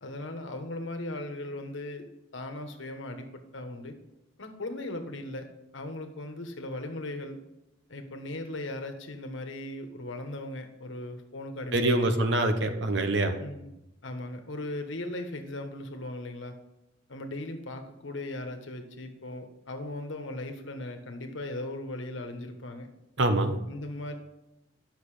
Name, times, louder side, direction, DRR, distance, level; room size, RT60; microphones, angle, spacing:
voice 1, 0.0-2.0 2.3-3.9 4.4-5.5 5.7-7.4 7.9-12.2 13.4-13.7 14.0-16.6 17.1-22.9 23.7-24.2, left 1 dB, 70° left, 6 dB, 1.3 m, -38 dB
voice 2, 11.7-13.4 23.2-23.6, right 1 dB, 60° right, 7 dB, 1.0 m, -25 dB
10.0 x 6.6 x 4.9 m, 0.90 s
head